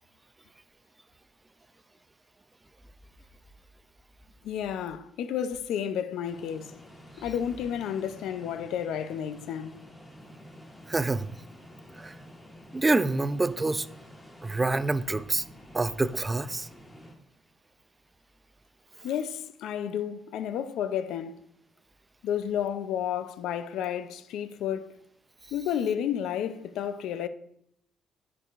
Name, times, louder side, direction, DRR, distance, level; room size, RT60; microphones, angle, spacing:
voice 1, 4.4-6.7 7.2-9.8 19.0-21.4 22.2-24.9 25.5-27.3, left 9 dB, 80° left, 0.5 m, -31 dB
sound 1, 6.2-17.1, equal, 10° left, 1.9 m, -50 dB
voice 2, 10.9-11.3 12.0-12.1 12.7-13.9 14.4-15.4 15.7-16.7, right 2 dB, 15° right, 0.3 m, -26 dB
9.9 x 4.7 x 2.5 m
cardioid pair, 115°, 0 cm